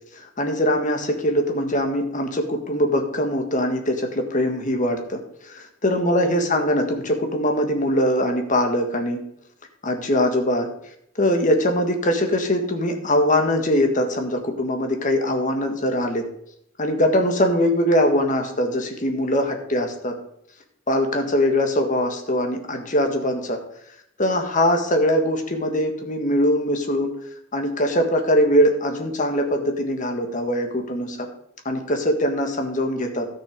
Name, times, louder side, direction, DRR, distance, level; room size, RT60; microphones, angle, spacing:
voice 1, 0.2-9.2 9.8-10.7 11.1-16.3 16.8-20.2 20.9-23.6 24.2-27.2 27.5-31.3 31.6-33.3, equal, 40° left, 4 dB, 1.7 m, -22 dB
13.0 x 6.4 x 5.3 m, 0.73 s
head